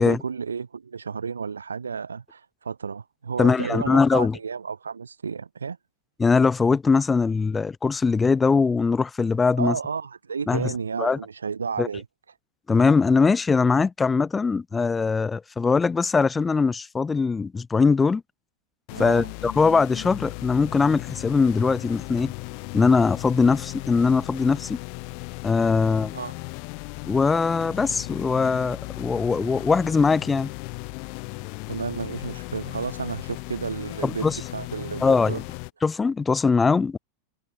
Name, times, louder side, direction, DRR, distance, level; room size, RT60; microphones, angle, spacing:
voice 1, 0.0-5.8 9.6-12.0 18.9-19.3 26.1-26.4 31.7-35.4, right 5 dB, 75° right, 6.5 m, -32 dB
voice 2, 3.4-4.4 6.2-9.7 10.5-10.7 11.0-11.2 11.8-11.9 12.7-18.2 19.0-22.3 22.7-24.8 25.4-26.1 27.1-30.5 34.0-34.4 35.0-35.4 35.8-37.0, left 4 dB, 15° left, 5.3 m, -21 dB
sound 1, 18.9-35.7, left 40 dB or more, 45° left, 3.6 m, -36 dB
figure-of-eight pair, 90°, 0 cm